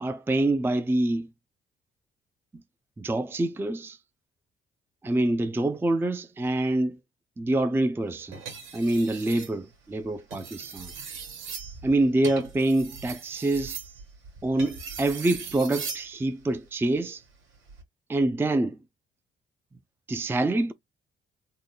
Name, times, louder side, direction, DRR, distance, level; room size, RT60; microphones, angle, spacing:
voice 1, 0.0-1.3 3.0-4.0 5.0-7.0 7.4-8.4 8.7-10.9 11.8-13.8 14.4-17.2 18.1-18.8 20.1-20.7, right 2 dB, 10° right, 0.4 m, -26 dB
sound 1, 8.3-9.5 10.2-16.1 17.5-17.8, right 5 dB, 85° right, 2.0 m, -39 dB
3.8 x 2.1 x 3.8 m
cardioid pair, 90°, 20 cm